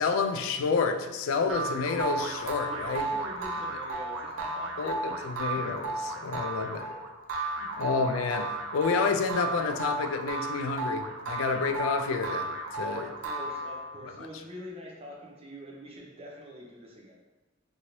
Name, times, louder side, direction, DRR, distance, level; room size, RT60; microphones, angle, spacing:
voice 1, 0.0-3.1 4.8-6.9 7.8-13.1 14.0-14.3, left 4 dB, 80° left, 6 dB, 0.3 m, -29 dB
sound 1, 1.5-14.0, right 2 dB, 90° right, 0.4 m, -34 dB
voice 2, 2.6-5.2 6.6-7.0 7.6-7.8 12.8-17.2, equal, 30° right, -3 dB, 0.6 m, -45 dB
2.7 x 2.7 x 3.0 m, 1.1 s
head